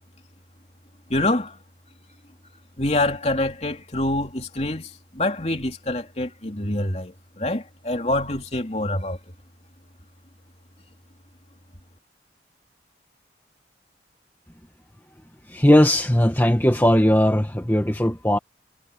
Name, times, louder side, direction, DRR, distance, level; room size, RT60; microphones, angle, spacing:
voice 1, 1.1-1.6 2.8-9.2, left 1 dB, 35° left, 3.5 m, -26 dB
voice 2, 15.5-18.4, equal, 10° left, 1.7 m, -18 dB
head